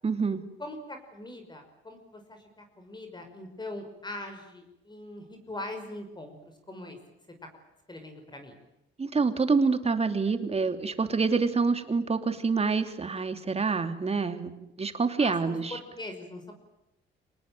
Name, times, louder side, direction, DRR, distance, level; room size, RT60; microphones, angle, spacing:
voice 1, 0.0-0.4 9.0-15.8, right 4 dB, 30° right, 8 dB, 3.0 m, -27 dB
voice 2, 0.6-7.0 7.9-8.6 15.2-16.5, left 1 dB, 20° left, 5 dB, 5.6 m, -42 dB
25.5 x 19.5 x 9.1 m, 0.90 s
cardioid pair, 90°, 20 cm